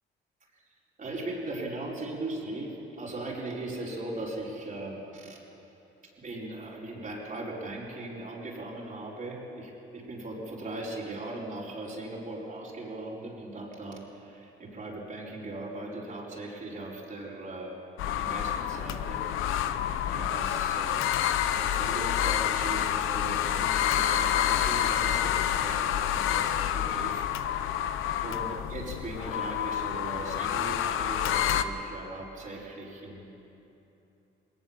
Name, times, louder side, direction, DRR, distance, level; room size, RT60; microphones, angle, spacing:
voice 1, 1.0-5.4 6.0-19.2 19.5-19.7 20.1-21.0 21.6-27.8 28.2-33.2, right 2 dB, 40° right, -4 dB, 4.8 m, -39 dB
sound 1, 18.0-31.6, left 10 dB, 90° left, 0.8 m, -28 dB
20.5 x 18.5 x 7.4 m, 3.0 s
cardioid pair, 90°, 20 cm